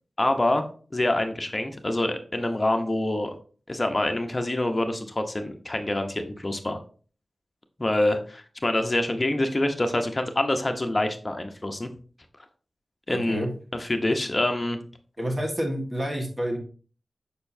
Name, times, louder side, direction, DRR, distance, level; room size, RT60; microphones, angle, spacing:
voice 1, 0.2-0.6 0.9-3.3 3.7-6.8 7.8-11.9 13.1-13.5 13.8-14.8, left 1 dB, 25° left, 6 dB, 0.8 m, -26 dB
voice 2, 13.1-13.5 15.2-16.6, equal, 20° right, 0 dB, 1.5 m, -28 dB
6.8 x 5.6 x 2.7 m, 0.40 s
wide cardioid pair, 115°, 0 cm